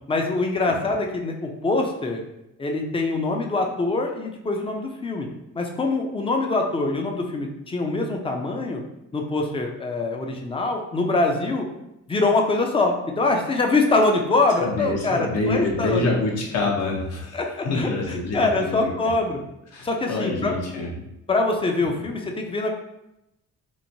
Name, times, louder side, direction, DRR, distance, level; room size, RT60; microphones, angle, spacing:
voice 1, 0.1-2.2 2.6-5.3 5.5-8.8 9.1-11.6 12.1-16.1 17.3-17.4 17.7-19.4 19.8-20.5 21.3-22.7, left 3 dB, 20° left, 2 dB, 0.4 m, -24 dB
voice 2, 14.6-19.1 19.7-20.9, left 2 dB, 60° left, -1 dB, 0.8 m, -26 dB
3.0 x 2.1 x 2.6 m, 0.87 s
cardioid pair, 90°, 30 cm